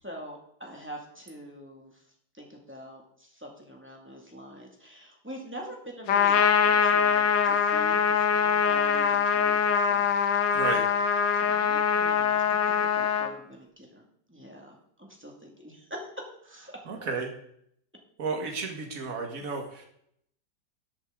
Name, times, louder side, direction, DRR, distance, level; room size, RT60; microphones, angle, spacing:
voice 1, 0.0-2.0 2.3-10.0 11.3-14.0 14.3-17.1, equal, 5° right, -1 dB, 2.2 m, -44 dB
Trumpet, 6.1-13.3, left 7 dB, 75° left, 1.6 m, -23 dB
voice 2, 10.5-10.9 16.9-17.3 18.2-19.9, right 4 dB, 50° right, 2 dB, 2.2 m, -32 dB
14.0 x 8.1 x 3.9 m, 0.69 s
omnidirectional pair, 2.0 m